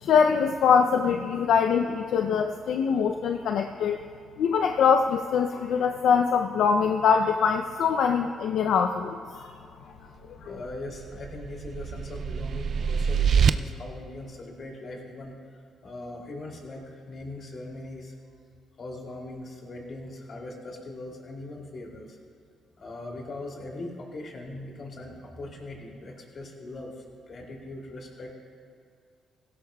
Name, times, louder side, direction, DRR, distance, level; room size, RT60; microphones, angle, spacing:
voice 1, 0.0-4.0 4.4-9.5 10.4-10.6, left 6 dB, 75° left, 5 dB, 0.5 m, -23 dB
voice 2, 10.5-15.4 15.8-18.1 18.8-22.2 22.8-28.3, left 2 dB, 50° left, 0 dB, 2.8 m, -40 dB
sound 1, 10.7-13.5, right 7 dB, 55° right, 0.4 m, -25 dB
17.0 x 16.5 x 2.3 m, 2.3 s
cardioid pair, 90°, 0 cm